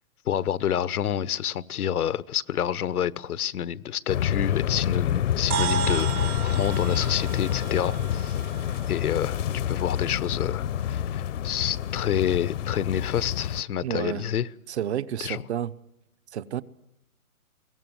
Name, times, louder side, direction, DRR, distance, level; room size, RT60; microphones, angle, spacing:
voice 1, 0.3-14.5 15.2-15.4, left 9 dB, 90° left, 1.0 m, -28 dB
sound 1, 4.1-13.6, left 10 dB, 60° left, 0.8 m, -28 dB
sound 2, 5.5-10.1, right 8 dB, 85° right, 2.0 m, -34 dB
voice 2, 13.8-14.3 14.7-15.7 16.3-16.6, right 10 dB, 50° right, 0.9 m, -30 dB
22.5 x 18.0 x 9.3 m
hypercardioid pair, 165°, 43 cm